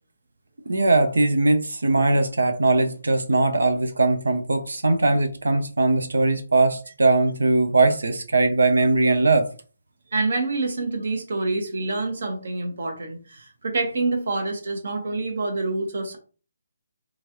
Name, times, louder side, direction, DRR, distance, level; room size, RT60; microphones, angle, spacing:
voice 1, 0.7-9.5, right 3 dB, 75° right, 0.5 m, -20 dB
voice 2, 10.1-16.2, right 3 dB, 60° right, 1.0 m, -27 dB
3.0 x 2.5 x 2.9 m
figure-of-eight pair, 145°, 0 cm